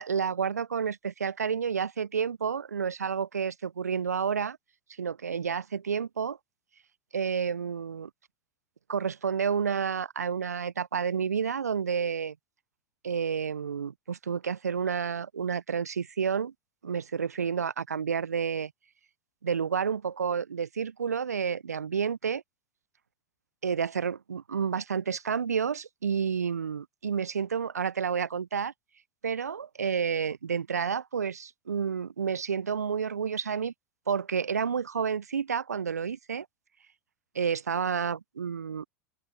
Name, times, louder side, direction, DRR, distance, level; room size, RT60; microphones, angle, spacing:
voice 1, 0.0-4.6 5.0-6.4 7.1-8.1 8.9-12.3 13.0-16.5 16.8-18.7 19.4-22.4 23.6-28.7 29.2-33.7 34.1-36.5 37.3-38.9, right 6 dB, 80° right, 1.0 m, -30 dB
open air
figure-of-eight pair, 85°, 9 cm